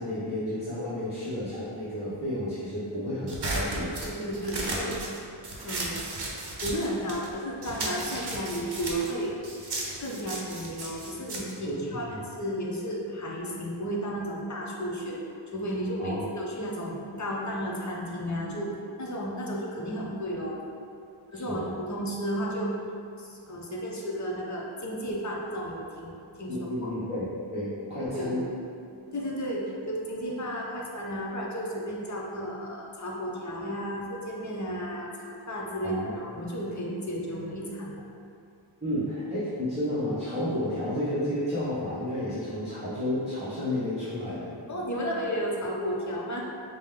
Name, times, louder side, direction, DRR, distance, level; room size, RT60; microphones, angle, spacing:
voice 1, 0.0-4.0 11.7-12.2 16.0-16.3 21.3-21.7 26.5-27.3 27.5-28.4 35.8-36.2 38.8-44.5, left 1 dB, 15° right, -15 dB, 1.0 m, -31 dB
sound 1, 3.3-7.3 7.6-12.4, right 2 dB, 50° right, 0.8 m, -35 dB
voice 2, 4.0-5.3 5.6-6.1 6.6-9.3 10.0-15.2 15.5-20.6 21.3-22.9 23.2-26.9 28.1-28.4 28.8-38.1 44.7-46.4, equal, 35° left, -2 dB, 0.7 m, -33 dB
5.0 x 2.2 x 3.6 m, 2.5 s
wide cardioid pair, 85°, 50 cm